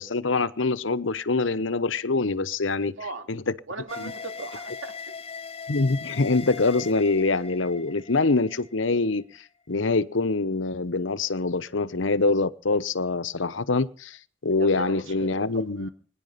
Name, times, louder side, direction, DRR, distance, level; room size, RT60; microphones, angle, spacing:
voice 1, 0.0-2.9 3.3-3.5 4.0-4.1 5.7-9.2 9.7-15.9, left 3 dB, 80° left, 16 dB, 1.0 m, -25 dB
voice 2, 3.7-4.9 14.6-15.5 15.8-15.9, right 3 dB, 75° right, 8 dB, 2.7 m, -37 dB
sound 1, 3.9-9.2, left 5 dB, 30° left, 0.9 m, -40 dB
23.5 x 10.5 x 5.7 m, 0.42 s
head